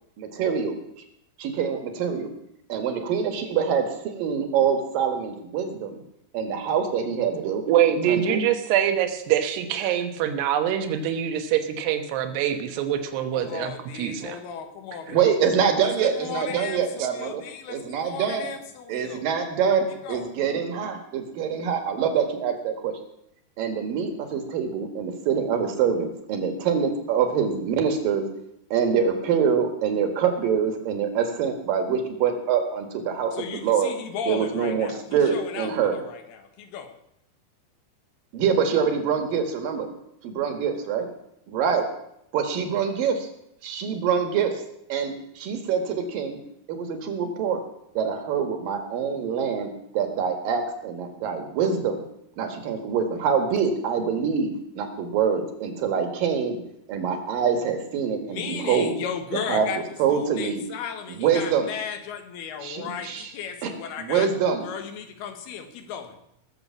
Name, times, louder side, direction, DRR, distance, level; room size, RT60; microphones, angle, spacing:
voice 1, 0.2-0.8 1.4-2.3 2.7-6.0 6.3-7.6 8.1-8.4 15.1-17.4 17.7-18.5 18.9-22.9 23.6-28.3 28.7-33.9 34.3-35.9 38.3-39.9 40.2-41.1 41.5-41.8 42.3-43.3 43.6-44.6 44.9-46.4 46.7-47.6 47.9-52.0 52.4-56.6 56.9-59.0 59.3-59.7 60.0-60.6 61.2-61.7 62.6-63.3 63.6-63.7 64.0-64.6, right 7 dB, 60° right, 6 dB, 3.1 m, -25 dB
voice 2, 7.4-13.7 14.0-14.4 17.0-17.1, right 10 dB, 80° right, 7 dB, 3.3 m, -24 dB
voice 3, 13.3-15.2 15.8-19.2 20.0-20.3 33.3-37.0 43.0-43.1 58.2-59.8 60.1-64.3 64.6-66.2, left 7 dB, 75° left, 7 dB, 3.3 m, -35 dB
20.0 x 7.0 x 7.2 m, 0.79 s
omnidirectional pair, 4.7 m